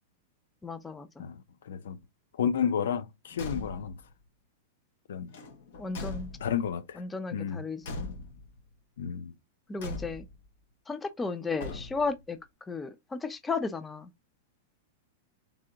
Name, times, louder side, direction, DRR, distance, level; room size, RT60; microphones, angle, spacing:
voice 1, 0.6-1.2 5.8-6.3 7.0-8.1 9.7-10.2 10.9-12.4 12.7-14.1, left 4 dB, 10° left, 0.4 m, -34 dB
voice 2, 1.7-2.0 2.4-4.0 5.1-5.3 6.4-7.0 7.3-7.6 9.0-9.3, left 8 dB, 85° left, 0.7 m, -31 dB
Car / Truck / Slam, 3.3-4.0 5.3-6.7 7.8-8.6 9.8-10.5 11.6-12.2, left 2 dB, 55° left, 1.3 m, -40 dB
3.7 x 3.3 x 3.7 m
supercardioid pair, 170°, 0 cm